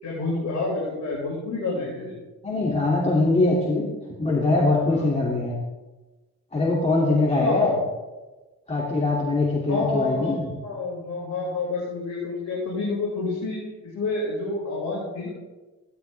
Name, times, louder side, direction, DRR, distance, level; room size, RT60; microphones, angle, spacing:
voice 1, 0.0-2.2 4.9-5.1 7.4-7.8 9.7-13.6 13.8-15.3, left 3 dB, 65° left, -5 dB, 5.2 m, -28 dB
voice 2, 2.4-3.9 4.2-5.6 6.5-7.7 8.7-10.5, left 2 dB, 20° left, -3 dB, 2.6 m, -22 dB
16.0 x 12.0 x 3.4 m, 1.2 s
cardioid pair, 90°, 30 cm